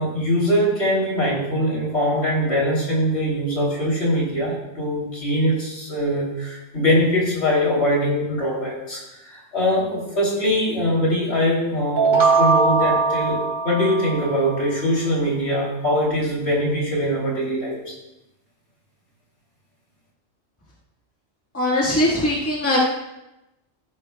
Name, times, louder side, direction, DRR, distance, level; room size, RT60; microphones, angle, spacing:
voice 1, 0.0-17.9, equal, 50° left, -4 dB, 3.6 m, -22 dB
sound 1, 12.0-14.7, right 4 dB, 50° right, 0.8 m, -20 dB
voice 2, 21.5-22.8, left 1 dB, 10° left, -5 dB, 1.7 m, -20 dB
14.5 x 11.0 x 2.3 m, 0.94 s
omnidirectional pair, 1.4 m